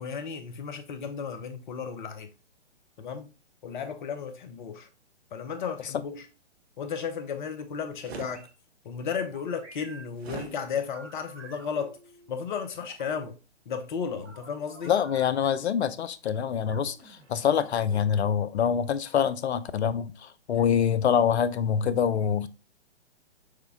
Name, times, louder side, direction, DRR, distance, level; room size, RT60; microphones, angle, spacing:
voice 1, 0.0-2.3 3.0-3.3 3.6-4.9 5.3-6.3 6.8-8.5 8.8-12.0 12.3-13.4 13.7-14.9, left 6 dB, 45° left, 0.8 m, -34 dB
sound 1, 8.0-8.4 10.2-10.5, right 5 dB, 60° right, 0.8 m, -39 dB
sound 2, 8.1-8.5 9.1-12.3 12.8-13.3 14.2-15.6 16.7-18.0, right 3 dB, 80° right, 2.0 m, -50 dB
voice 2, 14.9-22.5, left 8 dB, 65° left, 0.6 m, -25 dB
6.5 x 2.2 x 3.5 m
figure-of-eight pair, 130°, 35 cm